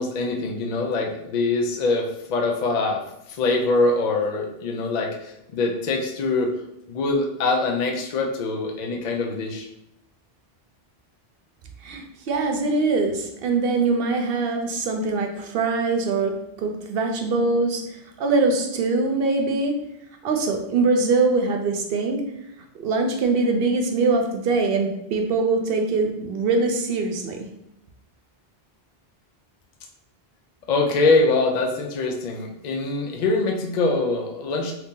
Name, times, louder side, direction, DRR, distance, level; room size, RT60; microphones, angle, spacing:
voice 1, 0.0-3.0 3.3-6.5 6.9-9.7 30.7-34.7, left 3 dB, 55° left, 2 dB, 0.5 m, -23 dB
voice 2, 11.8-17.8 18.2-19.7 20.2-22.2 22.7-27.5, right 3 dB, 70° right, 3 dB, 0.8 m, -23 dB
2.8 x 2.6 x 3.6 m, 0.81 s
omnidirectional pair, 1.0 m